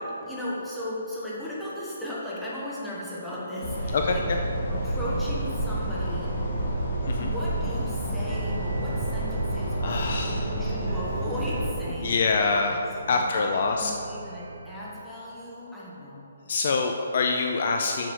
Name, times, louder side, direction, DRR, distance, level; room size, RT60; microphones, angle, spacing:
voice 1, 0.0-4.3 4.7-6.4 7.1-10.1 10.4-12.3 12.7-12.8 13.1-16.3, left 1 dB, 5° left, -8 dB, 1.3 m, -36 dB
sound 1, 3.6-11.7, right 1 dB, 65° left, 2.4 m, -29 dB
voice 2, 3.9-4.4 7.1-7.3 9.8-10.5 12.0-12.8 13.1-13.9 16.5-18.1, left 4 dB, 40° left, 3 dB, 0.5 m, -25 dB
sound 2, 8.3-15.0, right 4 dB, 55° right, 0.5 m, -40 dB
7.8 x 6.4 x 6.2 m, 2.8 s
hypercardioid pair, 175°, 0 cm